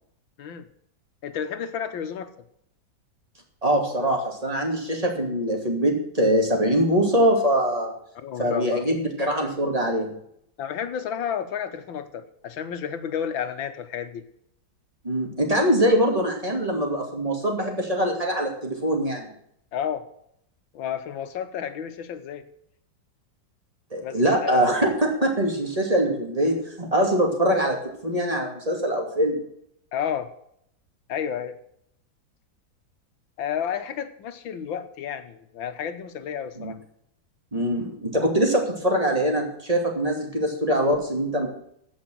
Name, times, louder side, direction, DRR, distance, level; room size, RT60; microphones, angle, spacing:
voice 1, 1.2-2.3 8.2-8.9 10.6-14.2 19.7-20.1 20.7-22.5 24.0-24.6 29.9-30.3 31.1-31.6 33.4-36.8, left 8 dB, 85° left, 9 dB, 1.8 m, -31 dB
voice 2, 3.6-7.9 8.4-10.1 15.0-19.3 23.9-27.8 28.0-29.4 36.6-36.7 37.5-41.5, right 1 dB, 20° right, 1 dB, 2.6 m, -23 dB
15.5 x 5.7 x 7.7 m, 0.71 s
omnidirectional pair, 2.1 m